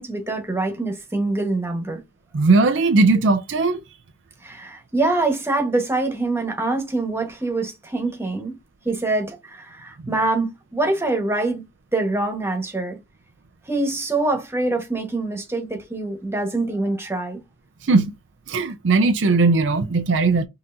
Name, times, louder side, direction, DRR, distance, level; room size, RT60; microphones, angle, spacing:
voice 1, 0.0-2.0 4.4-8.6 8.8-11.6 11.9-13.0 13.7-17.4, right 2 dB, 15° right, 1.2 m, -24 dB
voice 2, 2.3-3.8 10.0-10.1 17.9-18.1 18.5-20.5, right 3 dB, 75° right, 0.5 m, -18 dB
5.5 x 2.8 x 2.6 m
head